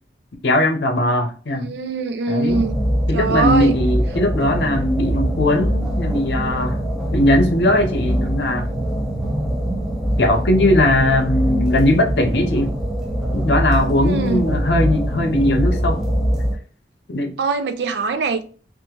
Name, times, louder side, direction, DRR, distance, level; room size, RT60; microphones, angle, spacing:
voice 1, 0.4-1.7 2.3-2.6 3.1-6.8 7.1-8.7 10.2-12.7 13.3-16.0 17.1-17.3, left 1 dB, 65° left, 0.7 m, -19 dB
voice 2, 1.5-2.8 3.1-3.8 14.0-14.5 17.4-18.4, right 3 dB, 65° right, 0.4 m, -22 dB
sound 1, 2.5-16.6, equal, 5° right, 0.5 m, -22 dB
2.8 x 2.5 x 3.6 m
head